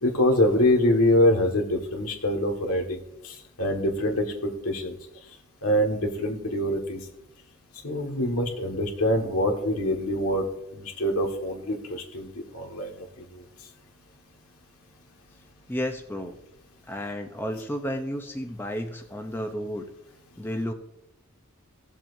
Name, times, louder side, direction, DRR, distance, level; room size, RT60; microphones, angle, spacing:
voice 1, 0.0-3.0 3.2-4.9 5.6-7.0 7.8-10.4 10.8-12.3 12.5-12.9, left 1 dB, 80° left, 3 dB, 1.8 m, -24 dB
voice 2, 15.7-16.3 16.9-19.8 20.4-20.7, equal, 10° left, 4 dB, 0.6 m, -32 dB
18.0 x 7.4 x 2.7 m, 0.85 s
head